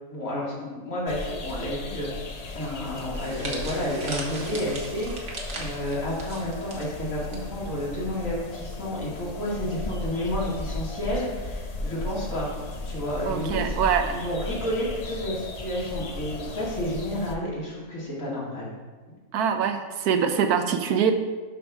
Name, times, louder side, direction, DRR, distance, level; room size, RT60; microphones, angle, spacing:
voice 1, 0.1-2.1 2.5-12.5 12.8-13.7 14.1-18.7, left 1 dB, 60° left, -6 dB, 2.8 m, -31 dB
sound 1, 1.1-17.3, left 2 dB, 40° left, 0.6 m, -35 dB
sound 2, 3.1-7.4 7.7-7.9 8.8-9.1, right 2 dB, 60° right, 1.7 m, -38 dB
voice 2, 13.2-14.1 19.3-21.1, right 7 dB, 85° right, 7 dB, 1.3 m, -24 dB
11.5 x 5.4 x 3.6 m, 1.4 s
omnidirectional pair, 1.6 m